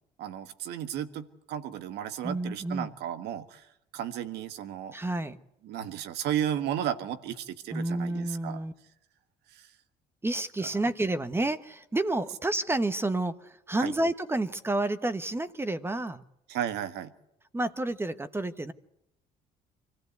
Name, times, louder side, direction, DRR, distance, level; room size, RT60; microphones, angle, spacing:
voice 1, 0.2-3.7 3.9-4.9 5.6-8.6 9.5-9.7 13.8-13.9 16.5-17.1, right 10 dB, 80° right, 11 dB, 1.5 m, -34 dB
voice 2, 2.2-2.9 4.9-5.4 7.7-8.7 10.2-16.2 17.5-18.7, right 2 dB, 15° right, 12 dB, 1.1 m, -30 dB
25.0 x 15.0 x 8.2 m, 0.84 s
cardioid pair, 110°, 17 cm